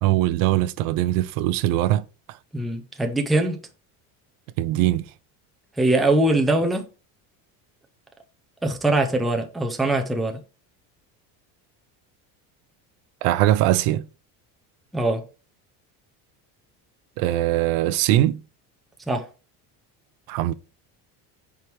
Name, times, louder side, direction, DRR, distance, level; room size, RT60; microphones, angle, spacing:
voice 1, 0.0-2.0 4.6-5.1 13.2-14.0 17.2-18.4 20.3-20.5, right 14 dB, 60° right, 0.5 m, -21 dB
voice 2, 2.5-3.6 5.8-6.8 8.6-10.4 14.9-15.2 19.1-19.3, right 2 dB, ahead, 0.4 m, -22 dB
8.3 x 4.6 x 3.2 m
cardioid pair, 170°, 40 cm